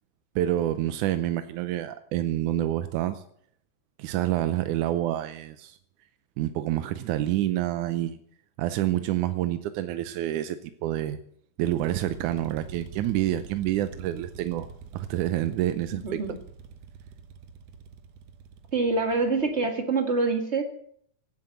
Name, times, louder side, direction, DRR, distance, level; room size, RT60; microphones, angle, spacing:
voice 1, 0.4-3.2 4.0-5.8 6.4-8.2 8.6-11.2 11.6-14.7 14.9-16.2, right 13 dB, 90° right, 11 dB, 2.3 m, -28 dB
sound 1, 11.6-19.7, right 5 dB, 65° right, 2.2 m, -45 dB
voice 2, 15.9-16.4 18.7-20.6, right 3 dB, 25° right, 5 dB, 1.9 m, -26 dB
16.5 x 9.7 x 7.8 m, 0.65 s
omnidirectional pair, 3.4 m